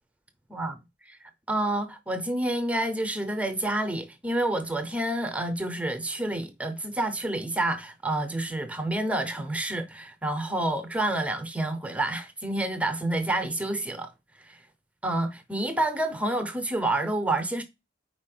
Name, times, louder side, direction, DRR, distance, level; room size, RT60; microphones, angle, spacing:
voice 1, 1.1-14.1 14.4-14.6 15.0-17.6, right 1 dB, 5° right, 0.7 m, -29 dB
4.9 x 4.2 x 5.9 m
head